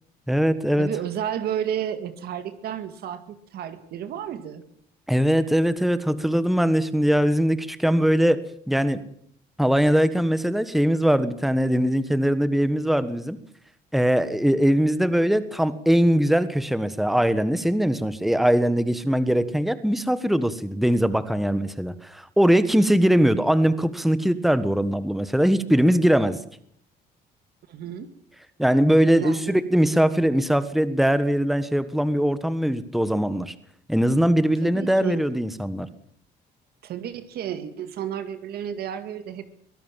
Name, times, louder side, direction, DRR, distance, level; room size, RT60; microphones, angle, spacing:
voice 1, 0.3-0.9 5.1-8.4 8.7-9.0 9.6-13.4 13.9-26.4 28.6-33.5 33.9-35.9, equal, ahead, 13 dB, 1.4 m, -21 dB
voice 2, 0.8-4.6 27.7-28.1 29.2-29.6 34.6-35.2 36.8-39.4, right 9 dB, 70° right, 10 dB, 2.1 m, -32 dB
23.5 x 17.0 x 7.5 m, 0.65 s
cardioid pair, 110°, 17 cm